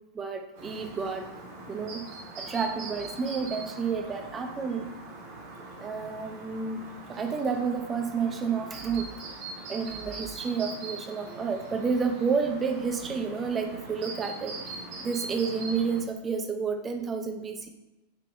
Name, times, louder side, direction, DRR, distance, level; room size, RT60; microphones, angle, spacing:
voice 1, 0.1-1.3 1.7-2.0 2.4-4.9 5.8-6.8 7.1-9.1 9.7-14.6 15.0-17.7, right 5 dB, 20° right, 5 dB, 0.5 m, -30 dB
Chirp tweet, 0.5-16.0, right 3 dB, 50° right, 1.1 m, -42 dB
5.5 x 2.8 x 2.3 m, 1.0 s
figure-of-eight pair, 90°, 0 cm